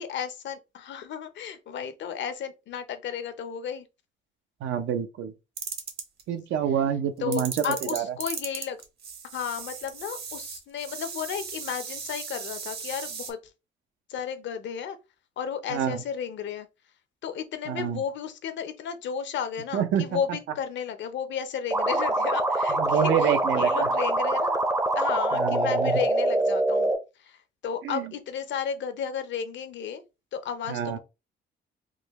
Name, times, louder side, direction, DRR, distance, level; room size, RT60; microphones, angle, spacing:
voice 1, 0.0-3.9 7.2-8.8 9.3-13.4 14.1-15.0 15.4-16.7 17.2-24.6 25.0-26.9 27.2-30.0 30.3-31.0, left 8 dB, 65° left, 0.6 m, -33 dB
voice 2, 4.6-5.3 6.3-8.0 15.7-16.0 17.7-18.0 19.7-20.2 22.7-23.9 25.3-25.9 27.8-28.1 30.7-31.0, right 9 dB, 75° right, 0.6 m, -27 dB
sound 1, 5.6-6.2 7.3-13.3, right 5 dB, 55° right, 1.0 m, -37 dB
sound 2, 21.7-27.0, right 2 dB, 15° right, 0.5 m, -24 dB
3.7 x 2.2 x 3.0 m
cardioid pair, 90°, 20 cm